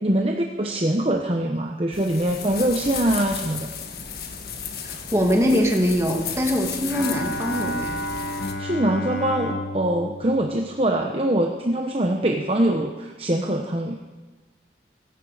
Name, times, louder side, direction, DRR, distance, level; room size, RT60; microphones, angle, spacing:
voice 1, 0.0-3.7 8.6-14.0, right 1 dB, 35° right, 2 dB, 1.0 m, -23 dB
sound 1, 1.9-8.5, left 6 dB, 60° left, 1.6 m, -34 dB
voice 2, 4.8-8.0, equal, 15° right, 1 dB, 2.3 m, -22 dB
Bowed string instrument, 6.9-11.3, left 1 dB, 75° left, 1.3 m, -32 dB
17.0 x 15.5 x 5.0 m, 1.3 s
head